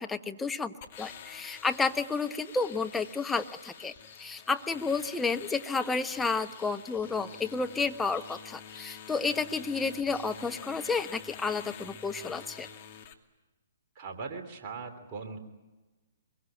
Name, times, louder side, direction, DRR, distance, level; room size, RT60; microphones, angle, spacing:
voice 1, 0.0-12.7, left 4 dB, 10° left, 6 dB, 1.2 m, -31 dB
sound 1, 0.8-13.1, left 9 dB, 40° left, 2.5 m, -48 dB
sound 2, 1.0-13.1, left 6 dB, 60° left, 3.5 m, -55 dB
voice 2, 13.9-15.4, right 4 dB, 35° right, 5 dB, 3.3 m, -40 dB
25.0 x 22.5 x 9.2 m, 1.2 s
figure-of-eight pair, 125°, 0 cm